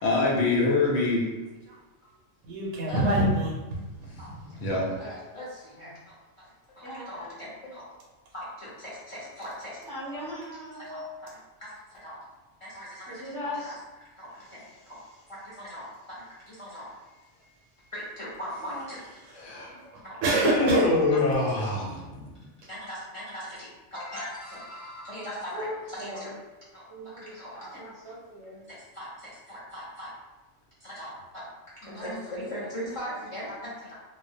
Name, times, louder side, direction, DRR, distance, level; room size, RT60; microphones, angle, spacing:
voice 1, 0.0-1.2 4.6-4.8 19.3-19.8 20.5-22.4, left 3 dB, 85° left, -2 dB, 1.0 m, -25 dB
voice 2, 2.4-4.3 19.2-19.4 19.9-20.9, right 1 dB, 90° right, -3 dB, 0.9 m, -27 dB
voice 3, 5.0-6.2 6.7-7.8 8.3-9.8 10.9-11.0 11.6-12.2 12.6-13.7 14.2-15.0 15.3-15.9 16.2-16.9 17.9-19.0 20.0-20.2 20.7-20.8 21.2-21.3 21.6-21.7 22.7-26.3 26.7-26.9 27.4-27.8 28.9-30.1 30.8-31.5 31.8-34.0, equal, 50° left, -9 dB, 0.4 m, -40 dB
voice 4, 6.8-7.4 9.8-11.1 13.1-13.8 14.4-15.1 17.4-17.9 18.6-18.9 19.3-20.0 20.3-21.0 25.5-26.4 26.9-28.7, equal, 20° right, -8 dB, 0.5 m, -38 dB
2.3 x 2.0 x 2.6 m, 1.1 s
omnidirectional pair, 1.3 m